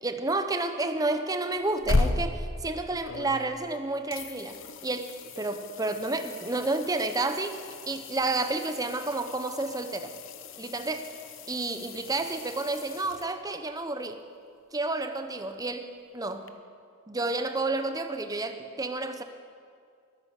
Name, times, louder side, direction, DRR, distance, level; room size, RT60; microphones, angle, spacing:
voice 1, 0.0-7.5 7.9-10.1 10.6-11.1 11.5-14.2 14.7-16.5 17.1-19.2, right 2 dB, 15° right, 8 dB, 0.8 m, -30 dB
sound 1, 1.6-3.7 4.1-13.7 16.5-16.6, left 2 dB, 60° left, 0.9 m, -35 dB
21.5 x 9.6 x 6.5 m, 2.3 s
head